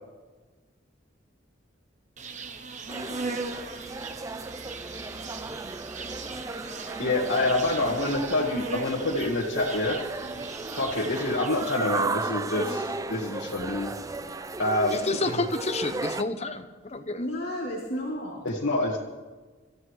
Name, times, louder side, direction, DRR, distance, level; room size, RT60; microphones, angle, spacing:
Insect, 2.2-12.0, right 4 dB, 40° right, 0.9 m, -39 dB
sound 1, 2.9-16.2, right 3 dB, 15° right, 0.4 m, -35 dB
voice 1, 7.0-10.0 10.7-13.9 14.6-15.0 18.4-19.0, left 2 dB, 85° left, -4 dB, 1.8 m, -27 dB
voice 2, 14.9-17.2, left 2 dB, 35° left, 8 dB, 1.0 m, -29 dB
voice 3, 17.2-18.4, equal, 55° left, -4 dB, 3.0 m, -32 dB
26.0 x 13.5 x 3.2 m, 1.3 s
head